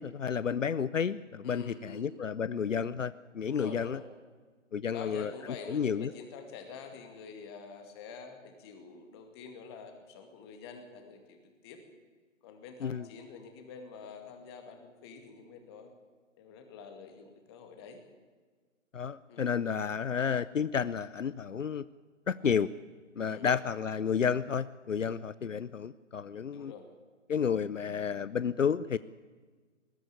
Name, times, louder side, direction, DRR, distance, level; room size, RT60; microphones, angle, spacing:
voice 1, 0.0-4.0 4.7-5.3 5.7-6.1 12.8-13.0 18.9-21.8 22.3-22.7 23.2-26.7 27.3-29.0, left 7 dB, 70° left, 18 dB, 0.7 m, -31 dB
voice 2, 1.4-2.1 3.4-4.1 4.9-11.8 12.4-15.9 16.4-18.0 19.3-19.5 23.2-23.6 26.4-26.9, left 5 dB, 20° left, 6 dB, 2.2 m, -47 dB
20.5 x 13.0 x 10.0 m, 1.5 s
figure-of-eight pair, 145°, 39 cm